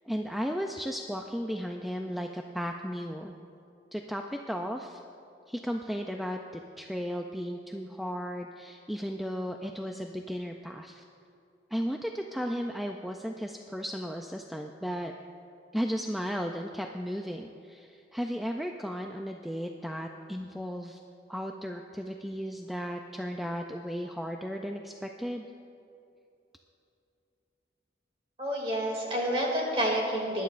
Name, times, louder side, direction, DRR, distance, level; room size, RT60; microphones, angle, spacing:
voice 1, 0.1-3.3 3.9-5.0 5.5-11.0 11.7-15.1 15.7-21.0 21.3-25.5, equal, ahead, 3 dB, 0.3 m, -35 dB
voice 2, 28.4-30.4, equal, 30° right, -2 dB, 2.4 m, -29 dB
20.5 x 11.5 x 2.5 m, 2.6 s
head